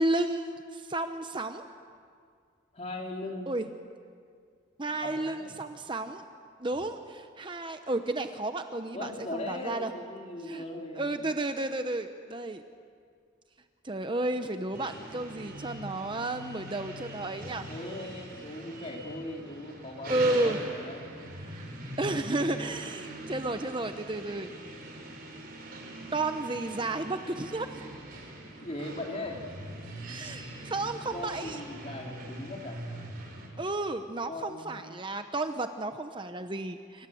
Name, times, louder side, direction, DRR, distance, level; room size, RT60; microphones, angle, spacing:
voice 1, 0.0-1.7 3.5-3.7 4.8-6.2 6.6-9.9 10.5-10.6 10.9-12.6 13.8-17.7 20.1-20.6 21.4-21.6 22.0-24.5 26.1-27.9 30.1-31.6 33.6-37.1, right 2 dB, 25° right, 7 dB, 0.8 m, -32 dB
voice 2, 2.7-3.5 5.0-5.5 6.7-6.8 8.9-11.2 17.7-21.1 28.6-29.4 31.1-32.8 34.3-34.7, left 1 dB, 30° left, 1 dB, 3.4 m, -39 dB
sound 1, 14.7-33.5, right 1 dB, 45° right, 5.2 m, -42 dB
27.0 x 25.5 x 7.8 m, 2.2 s
head